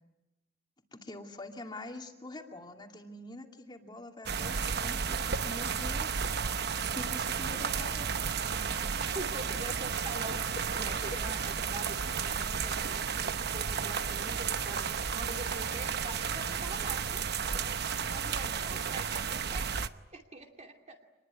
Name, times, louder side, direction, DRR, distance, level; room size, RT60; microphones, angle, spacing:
voice 1, 0.9-6.3 6.9-8.1, left 2 dB, 25° left, 3 dB, 2.5 m, -45 dB
sound 1, 4.3-19.9, right 6 dB, 55° right, 0.9 m, -33 dB
voice 2, 9.0-17.2 17.6-19.7 20.1-21.0, right 2 dB, 35° right, 3 dB, 2.6 m, -44 dB
27.0 x 21.0 x 9.6 m, 1.0 s
head